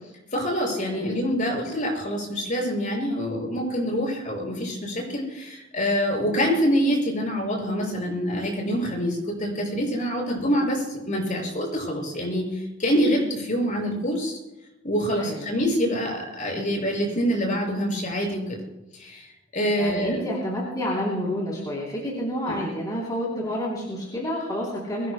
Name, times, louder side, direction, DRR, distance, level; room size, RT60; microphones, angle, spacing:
voice 1, 0.3-14.4 14.8-18.6 18.9-19.3 19.5-20.2 22.4-22.6, equal, 40° left, 0 dB, 5.9 m, -26 dB
voice 2, 15.2-15.5 19.7-25.1, equal, 20° left, -4 dB, 3.3 m, -29 dB
23.0 x 17.0 x 2.2 m, 0.99 s
head